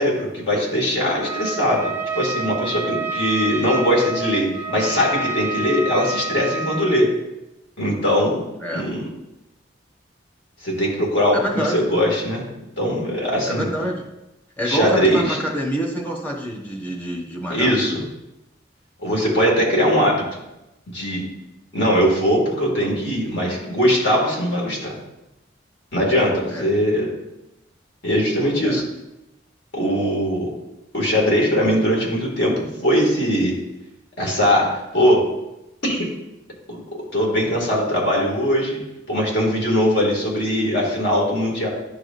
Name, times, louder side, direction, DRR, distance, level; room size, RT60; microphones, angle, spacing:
voice 1, 0.0-7.1 7.8-8.4 8.7-9.0 10.6-12.4 12.8-13.7 14.6-15.4 17.5-18.0 19.0-20.2 20.9-21.3 21.7-24.9 25.9-27.1 28.0-28.8 29.7-30.5 30.9-33.5 34.2-35.2 35.8-36.1 36.7-36.8 37.1-38.8 39.1-41.7, equal, 65° left, -2 dB, 2.2 m, -20 dB
Trumpet, 1.2-7.1, right 3 dB, 10° right, 0.7 m, -28 dB
voice 2, 11.3-11.9 13.4-14.1 14.6-17.7 26.5-26.7 28.6-28.8, equal, 10° left, -1 dB, 1.1 m, -26 dB
11.0 x 4.8 x 2.6 m, 0.94 s
head